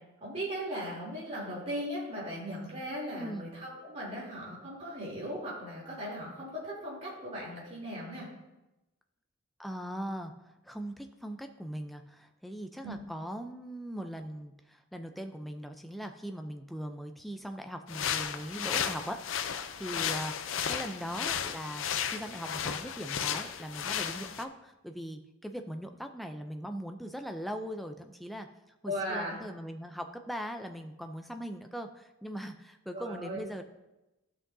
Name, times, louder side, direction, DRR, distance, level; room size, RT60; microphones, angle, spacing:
voice 1, 0.2-8.3 12.8-13.0 28.8-29.4 32.9-33.4, equal, 30° right, -6 dB, 3.0 m, -38 dB
voice 2, 3.1-3.5 9.6-19.2 19.5-28.5 28.8-33.6, equal, ahead, 5 dB, 0.4 m, -40 dB
sound 1, 17.9-24.4, left 8 dB, 55° left, 0.5 m, -34 dB
13.5 x 6.0 x 2.7 m, 0.99 s
head